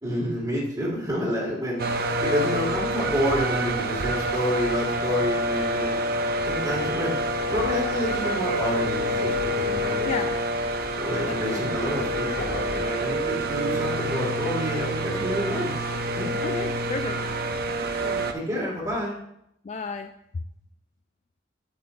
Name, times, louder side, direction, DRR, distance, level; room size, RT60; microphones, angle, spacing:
voice 1, 0.0-1.8 2.2-6.0 6.5-7.2 7.5-10.1 11.0-15.7 16.2-16.3 18.3-19.1, equal, 20° right, -8 dB, 1.8 m, -28 dB
sound 1, 1.8-18.3, right 1 dB, 55° right, 0.6 m, -27 dB
sound 2, 7.5-14.4, left 2 dB, 75° left, 1.3 m, -41 dB
voice 2, 10.0-10.4 10.7-10.8 11.3-11.8 16.4-17.3 18.0-18.3 19.6-20.1, left 4 dB, 40° left, 7 dB, 0.3 m, -33 dB
8.0 x 7.8 x 2.5 m, 0.77 s
head